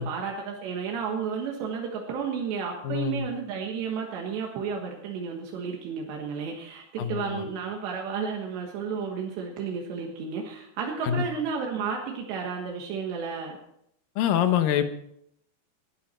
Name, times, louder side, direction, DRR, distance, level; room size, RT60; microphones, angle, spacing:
voice 1, 0.0-13.6, right 6 dB, 85° right, 0 dB, 3.8 m, -32 dB
voice 2, 2.8-3.3 7.0-7.4 11.0-11.2 14.2-14.8, left 10 dB, 70° left, 9 dB, 2.3 m, -25 dB
18.5 x 11.5 x 4.4 m, 0.75 s
omnidirectional pair, 4.8 m